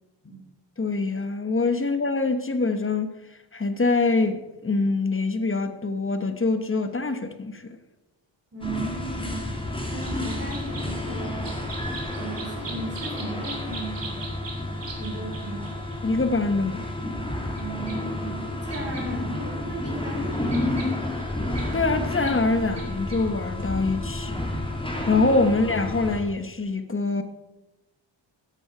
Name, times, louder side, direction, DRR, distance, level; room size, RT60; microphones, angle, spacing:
voice 1, 0.8-3.2 3.5-7.6 16.0-16.9 21.7-24.5 25.0-27.2, left 3 dB, 25° left, 1.1 m, -24 dB
voice 2, 8.5-9.6 9.9-11.6 12.1-14.0 15.0-15.8 17.5-20.8, right 2 dB, 30° right, 3.3 m, -36 dB
sound 1, 8.6-26.2, left 1 dB, 10° left, 2.4 m, -31 dB
sound 2, 10.0-16.3 17.6-17.7 17.9-18.0 18.7-19.0 19.4-19.5 19.8-21.6 22.2-22.3 22.8-22.9 23.1-23.2, right 4 dB, 65° right, 2.7 m, -40 dB
14.0 x 7.9 x 4.9 m
wide cardioid pair, 105°, 46 cm